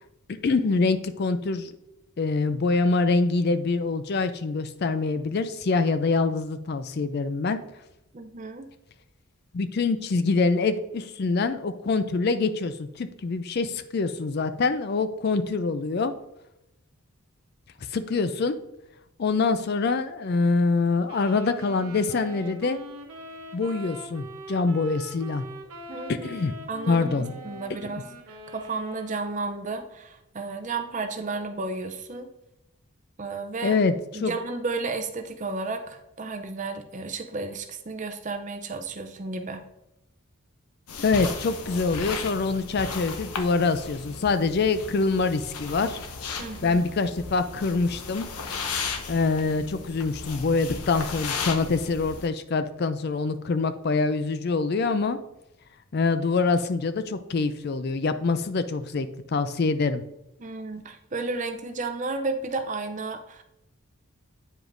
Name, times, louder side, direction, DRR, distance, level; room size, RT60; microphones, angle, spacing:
voice 1, 0.4-1.7 2.2-7.6 9.5-16.1 17.9-18.6 19.2-22.8 23.5-25.5 26.2-26.5 26.9-27.3 27.8-27.9 33.6-34.3 41.0-46.0 46.6-48.3 49.1-55.2 55.9-60.0, left 4 dB, 45° left, 11 dB, 0.4 m, -25 dB
voice 2, 8.1-8.7 25.9-26.3 26.7-32.3 33.2-33.7 34.1-39.6 46.4-46.8 60.4-63.4, right 3 dB, 35° right, 6 dB, 0.5 m, -33 dB
sound 1, 21.1-29.4, equal, 80° right, 1.0 m, -43 dB
sound 2, 40.9-52.3, left 5 dB, 80° left, 0.7 m, -35 dB
8.8 x 4.9 x 2.6 m, 0.88 s
head